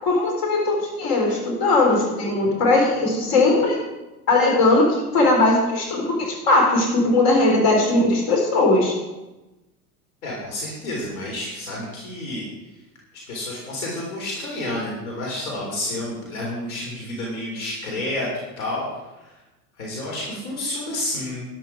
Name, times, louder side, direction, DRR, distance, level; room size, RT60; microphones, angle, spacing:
voice 1, 0.0-3.8 4.3-8.9, left 2 dB, 50° left, 0 dB, 4.6 m, -19 dB
voice 2, 10.2-12.4 13.3-19.4 19.8-21.5, left 1 dB, 65° left, -3 dB, 4.0 m, -30 dB
12.5 x 10.5 x 5.0 m, 1.0 s
figure-of-eight pair, 80°, 45 cm